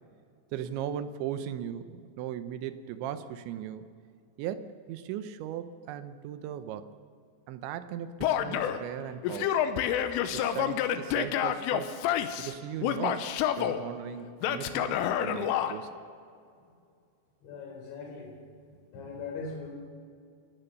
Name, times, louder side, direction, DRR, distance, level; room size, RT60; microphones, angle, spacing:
voice 1, 0.5-3.9 4.4-6.9 7.5-9.6 10.3-12.0 12.4-13.3 13.6-16.1, right 10 dB, 80° right, 11 dB, 2.9 m, -38 dB
Male speech man speaking / Yell, 8.2-8.8 9.2-12.5 12.8-13.8 14.4-15.7, left 10 dB, 85° left, 3.5 m, -28 dB
voice 2, 17.4-18.4 18.9-19.7, left 4 dB, 65° left, 1 dB, 6.2 m, -40 dB
29.0 x 14.0 x 6.8 m, 2.3 s
omnidirectional pair, 5.8 m